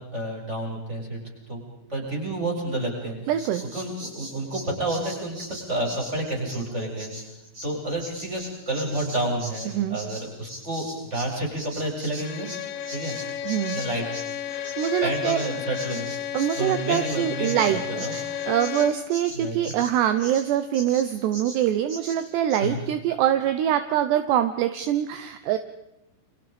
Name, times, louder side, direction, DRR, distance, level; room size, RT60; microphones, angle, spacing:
voice 1, 0.1-1.2 1.5-1.6 1.9-3.2 3.7-7.1 7.6-12.5 12.9-13.2 13.7-14.1 15.0-16.1 16.6-18.2 19.3-19.6 22.6-22.8, right 1 dB, 15° right, -1 dB, 7.3 m, -29 dB
voice 2, 3.3-3.7 9.7-10.0 13.4-13.8 14.8-15.4 16.3-25.6, right 11 dB, 75° right, 10 dB, 3.0 m, -24 dB
Bird vocalization bird call bird song, 3.4-11.3 11.6-20.5 20.7-21.1 21.3-21.6 21.9-22.2 22.5-22.6, equal, 40° right, 9.4 m, -40 dB
Bowed string instrument, 12.2-19.1, left 10 dB, 80° left, 3.6 m, -33 dB
30.0 x 26.0 x 5.3 m, 0.87 s
omnidirectional pair, 5.2 m